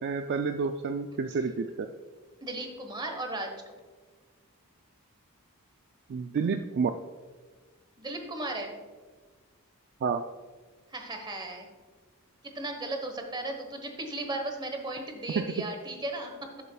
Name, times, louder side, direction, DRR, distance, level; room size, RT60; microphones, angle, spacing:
voice 1, 0.0-1.9 6.1-6.9 10.0-10.2 15.4-15.6, right 5 dB, 50° right, 6 dB, 0.3 m, -29 dB
voice 2, 2.4-3.5 8.0-8.8 10.9-11.7 12.5-16.5, right 2 dB, 20° right, 4 dB, 1.1 m, -36 dB
12.0 x 6.7 x 2.3 m, 1.4 s
head